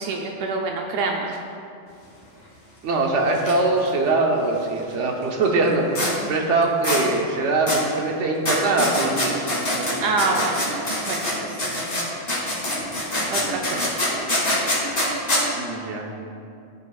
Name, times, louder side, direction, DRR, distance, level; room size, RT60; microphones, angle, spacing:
voice 1, 0.0-1.4 10.0-10.6 11.1-11.6 13.3-13.9, right 3 dB, 90° right, 1 dB, 1.0 m, -26 dB
voice 2, 2.8-10.4 13.3-13.5 15.6-16.1, right 3 dB, 70° right, 0 dB, 1.2 m, -23 dB
sound 1, 3.3-3.5 3.8-3.9 6.0-6.1 6.8-7.0 7.7-7.8 8.5-11.3 11.6-15.4, left 1 dB, 50° left, 1.9 m, -24 dB
13.0 x 5.8 x 2.3 m, 2.5 s
omnidirectional pair, 1.3 m